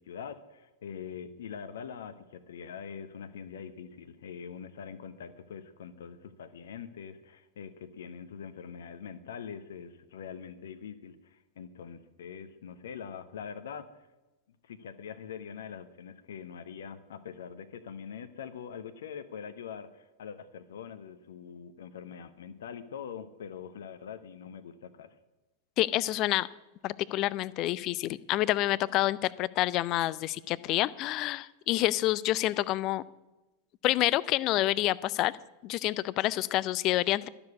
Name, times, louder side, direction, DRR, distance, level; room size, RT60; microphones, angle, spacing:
voice 1, 0.0-13.9 14.6-25.1, left 7 dB, 60° left, 13 dB, 0.8 m, -43 dB
voice 2, 25.8-26.5 26.8-33.0 33.8-35.3 35.6-37.3, left 16 dB, 40° left, 20 dB, 0.4 m, -28 dB
12.5 x 7.0 x 8.3 m, 1.0 s
figure-of-eight pair, 90°, 0 cm